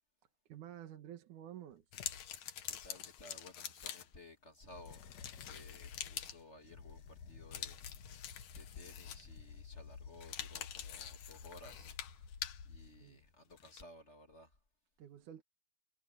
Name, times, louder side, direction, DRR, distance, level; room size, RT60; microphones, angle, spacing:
voice 1, 0.5-1.9 12.2-12.3 13.0-13.2 15.0-15.4, right 11 dB, 90° right, 3.0 m, -51 dB
sound 1, 1.7-2.9 4.6-13.3, left 6 dB, 65° left, 2.6 m, -53 dB
sound 2, 1.9-4.3 4.9-6.4 7.5-9.4 10.1-12.7 13.6-13.8, left 10 dB, 85° left, 3.0 m, -46 dB
voice 2, 2.7-5.0 5.4-7.8 8.5-12.0 12.7-14.5, left 2 dB, 25° left, 1.8 m, -57 dB
omnidirectional pair, 3.4 m